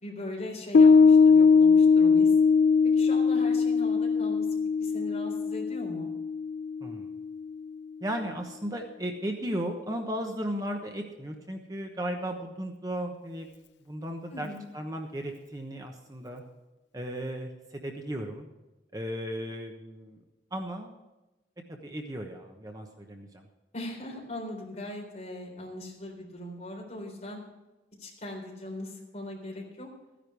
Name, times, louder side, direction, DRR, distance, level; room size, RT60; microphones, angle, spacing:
voice 1, 0.0-2.3 3.0-4.5 4.8-6.1 14.3-14.6 23.7-27.4 28.0-29.9, left 1 dB, 40° left, 0 dB, 3.8 m, -40 dB
Piano, 0.7-7.5, left 5 dB, 80° left, 0.4 m, -21 dB
voice 2, 6.8-7.1 8.0-13.5 13.8-14.5 14.7-16.4 16.9-18.5 18.9-20.2 20.5-21.0 21.7-23.5, equal, 20° right, 3 dB, 1.1 m, -35 dB
14.5 x 10.0 x 4.7 m, 1.1 s
head